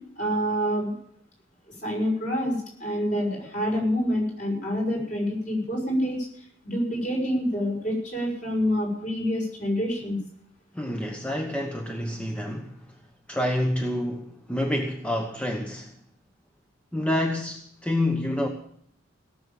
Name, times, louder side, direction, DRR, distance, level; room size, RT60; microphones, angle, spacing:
voice 1, 0.2-0.9 1.8-6.2 6.6-10.2, equal, 40° left, -1 dB, 6.2 m, -27 dB
voice 2, 10.7-12.8 13.3-15.9 16.9-18.5, left 1 dB, 5° left, 3 dB, 1.0 m, -28 dB
17.0 x 7.2 x 8.9 m, 0.66 s
head